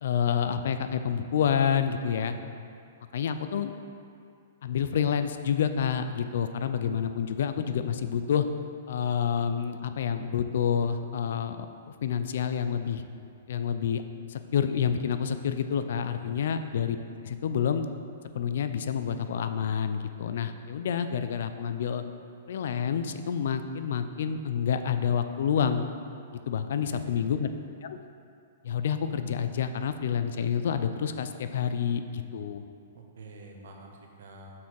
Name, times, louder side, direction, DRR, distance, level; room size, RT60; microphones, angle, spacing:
voice 1, 0.0-2.3 3.1-3.7 4.6-8.5 8.9-13.0 13.5-14.0 14.3-17.0 17.2-17.8 18.3-22.0 22.5-25.9 26.5-27.5 27.8-28.0 28.6-32.6, left 7 dB, 65° left, 9 dB, 0.4 m, -28 dB
voice 2, 2.1-2.4 16.0-16.4 26.9-27.3 32.9-34.5, right 3 dB, 70° right, 2 dB, 0.9 m, -47 dB
5.8 x 4.4 x 4.7 m, 2.4 s
hypercardioid pair, 160°, 0 cm